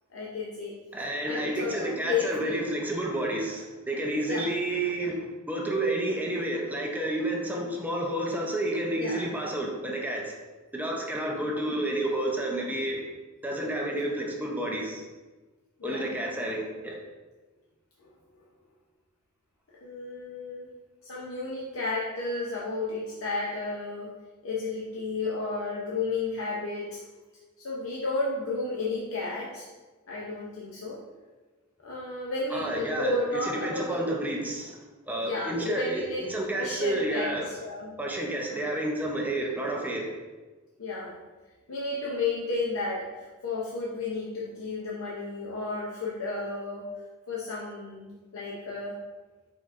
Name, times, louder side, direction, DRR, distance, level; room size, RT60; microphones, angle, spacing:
voice 1, 0.1-0.8 1.2-2.6 4.3-4.5 9.0-9.3 11.3-11.5 15.8-16.3 18.0-18.1 19.8-20.7 21.0-24.1 24.4-27.0 27.6-29.7 30.1-31.0 31.8-34.0 35.2-36.2 36.5-37.9 38.5-38.6 40.8-41.2 41.7-46.9 47.3-49.0, left 3 dB, 80° left, -4 dB, 0.6 m, -32 dB
voice 2, 0.9-10.4 10.7-13.0 13.4-15.0 15.8-17.0 32.5-37.5 38.0-40.1, right 1 dB, 10° right, -1 dB, 0.5 m, -30 dB
4.7 x 4.3 x 2.5 m, 1.3 s
head